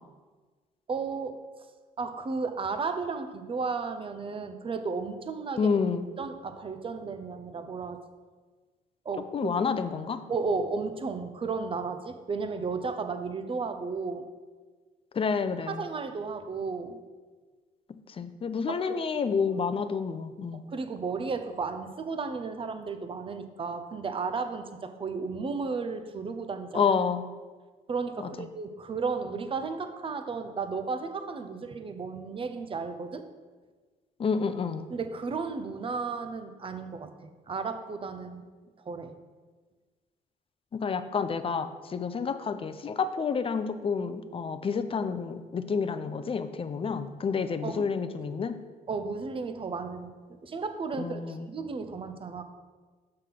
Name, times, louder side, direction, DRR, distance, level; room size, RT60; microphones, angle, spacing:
voice 1, 0.9-1.4 2.0-5.7 6.2-8.0 9.0-9.5 10.3-14.3 15.7-17.0 18.7-19.0 20.7-26.9 27.9-33.2 34.9-37.1 37.5-38.4 38.8-39.1 47.6-47.9 48.9-52.4, right 4 dB, 30° right, 8 dB, 0.7 m, -34 dB
voice 2, 5.6-6.1 9.3-10.2 15.1-15.8 18.2-20.6 26.7-27.2 34.2-34.9 40.7-48.6 51.0-51.5, left 5 dB, 35° left, 11 dB, 0.5 m, -29 dB
6.5 x 3.8 x 5.8 m, 1.4 s
supercardioid pair, 75°, 17 cm